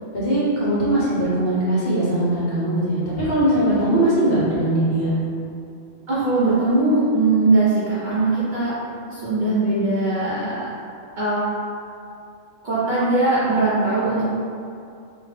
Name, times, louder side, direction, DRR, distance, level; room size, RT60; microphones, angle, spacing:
voice 1, 0.1-5.2, right 1 dB, 55° left, -10 dB, 1.1 m, -20 dB
voice 2, 6.1-8.8 9.1-10.6 11.2-11.4 12.6-14.2, right 2 dB, 50° right, -10 dB, 0.6 m, -20 dB
2.7 x 2.1 x 3.2 m, 2.5 s
omnidirectional pair, 1.2 m